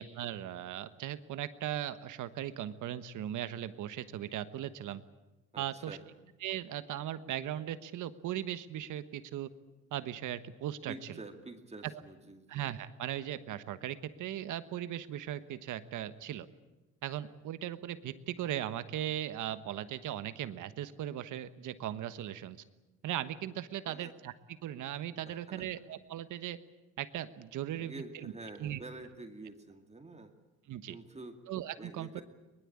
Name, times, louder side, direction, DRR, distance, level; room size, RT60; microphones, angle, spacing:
voice 1, 0.0-5.0 5.6-6.0 6.4-9.5 9.9-11.2 12.5-16.5 17.0-22.6 23.0-24.3 24.6-26.6 27.0-28.3 28.6-28.8 30.7-31.0 31.5-32.2, right 11 dB, 80° right, 12 dB, 1.3 m, -38 dB
voice 2, 5.5-6.1 10.9-12.6 23.8-24.1 25.2-25.7 27.7-30.3 30.9-31.4 31.8-32.2, right 2 dB, 20° right, 5 dB, 2.3 m, -47 dB
22.5 x 21.0 x 8.7 m, 1.1 s
cardioid pair, 90°, 30 cm